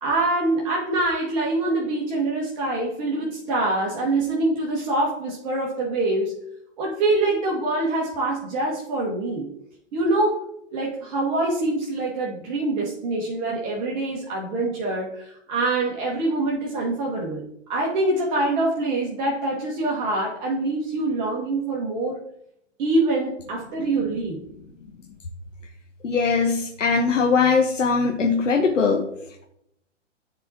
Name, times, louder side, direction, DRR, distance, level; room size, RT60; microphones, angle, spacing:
voice 1, 0.0-6.4 6.8-9.5 9.9-17.4 17.7-22.2 22.8-24.4, right 2 dB, 35° right, -3 dB, 1.4 m, -25 dB
voice 2, 26.0-29.5, left 5 dB, 80° left, 4 dB, 0.8 m, -21 dB
10.0 x 4.2 x 2.8 m, 0.74 s
figure-of-eight pair, 120°, 37 cm